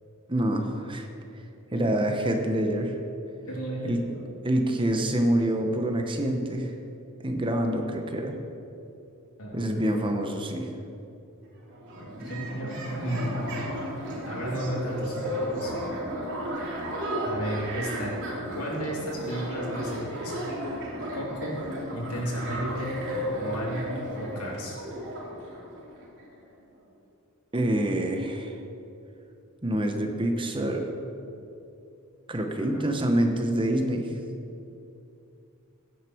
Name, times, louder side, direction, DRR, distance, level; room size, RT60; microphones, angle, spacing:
voice 1, 0.3-1.1 1.7-2.9 3.8-4.0 4.4-6.7 7.2-8.4 9.5-10.7 12.2-12.3 27.5-28.5 29.6-30.9 32.3-34.1, right 1 dB, 20° right, 4 dB, 0.9 m, -26 dB
voice 2, 1.7-2.0 3.5-4.3 9.4-9.9 11.9-13.5 14.2-15.7 17.2-18.1 18.6-20.6 21.1-21.6 21.9-23.0 23.3-24.8 32.6-32.8, equal, 80° left, -3 dB, 3.0 m, -34 dB
sound 1, 11.4-11.5 11.7-26.3, equal, 55° right, 3.3 m, -34 dB
16.0 x 9.6 x 4.5 m, 2.7 s
head